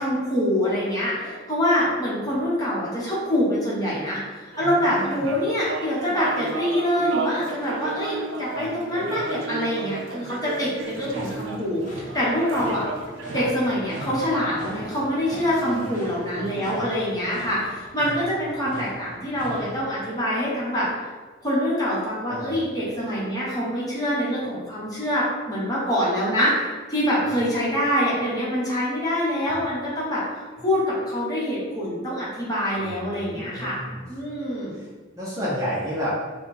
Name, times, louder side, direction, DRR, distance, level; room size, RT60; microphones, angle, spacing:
voice 1, 0.0-12.8 13.3-20.9 21.4-26.5 26.9-33.8 34.1-34.8, equal, 20° left, -7 dB, 1.0 m, -25 dB
sound 1, 4.5-18.2, right 4 dB, 75° right, 0.4 m, -35 dB
voice 2, 4.6-5.3 8.5-9.2 13.3-13.5 15.6-16.1 22.3-22.6 27.4-27.5 32.8-34.0 34.7-34.9 35.2-36.2, equal, 15° right, -8 dB, 0.7 m, -32 dB
sound 2, 10.8-19.8, equal, 40° left, 0.7 m, -40 dB
3.5 x 2.3 x 4.4 m, 1.4 s
head